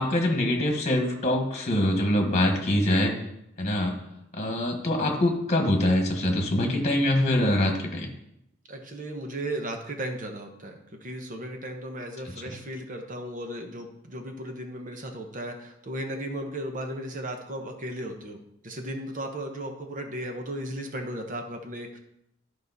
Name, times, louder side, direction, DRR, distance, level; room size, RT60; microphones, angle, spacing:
voice 1, 0.0-3.1 3.6-4.0 4.3-8.1, left 1 dB, 35° left, 3 dB, 1.4 m, -24 dB
voice 2, 8.7-18.4 18.6-22.0, right 1 dB, 40° right, 4 dB, 1.0 m, -35 dB
11.5 x 4.9 x 4.1 m, 0.80 s
head